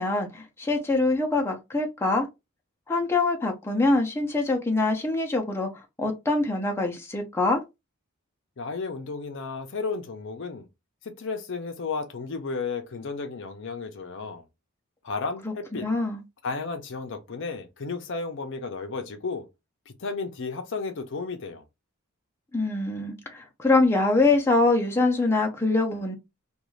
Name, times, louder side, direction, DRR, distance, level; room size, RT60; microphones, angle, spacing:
voice 1, 0.0-2.3 2.9-5.7 6.0-7.6 15.4-15.5 15.8-16.2 22.5-26.2, left 2 dB, 10° left, 0.5 m, -24 dB
voice 2, 8.6-10.7 11.0-14.4 15.0-15.9 16.4-19.5 20.0-21.6, left 4 dB, 60° left, 0.6 m, -33 dB
2.5 x 2.3 x 3.1 m
head